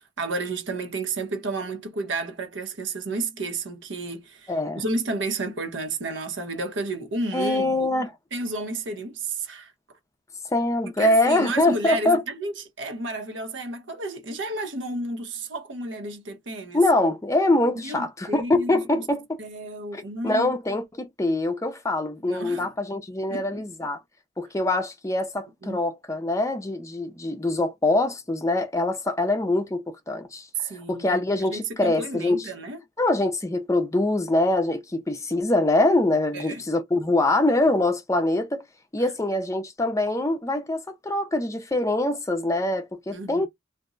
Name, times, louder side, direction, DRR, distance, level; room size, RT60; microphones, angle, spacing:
voice 1, 0.0-7.8 8.3-9.7 11.0-16.8 17.8-19.1 19.4-20.5 22.3-22.7 23.3-23.6 25.6-25.8 30.6-32.8 36.3-36.6 43.1-43.5, right 2 dB, 80° right, 0.9 m, -32 dB
voice 2, 4.5-4.8 7.3-8.1 10.5-12.2 16.7-19.4 19.9-24.0 24.4-30.5 30.9-32.5 33.0-38.6 38.9-43.5, left 2 dB, 15° left, 0.5 m, -24 dB
2.6 x 2.1 x 3.7 m
head